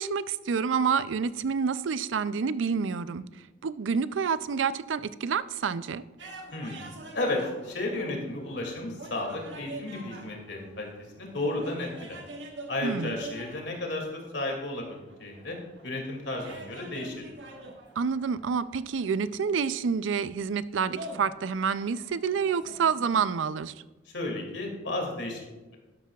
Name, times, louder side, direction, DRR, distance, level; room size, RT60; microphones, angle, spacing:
voice 1, 0.0-3.2 3.6-6.0 12.8-13.1 18.0-23.7, right 6 dB, 90° right, 15 dB, 0.4 m, -28 dB
sound 1, 6.2-23.4, right 2 dB, 70° right, 1.3 m, -46 dB
voice 2, 6.5-10.9 11.2-12.2 12.7-15.6 15.8-17.3 24.1-25.4, left 2 dB, 70° left, 1 dB, 2.4 m, -33 dB
12.0 x 11.5 x 2.4 m, 1.1 s
head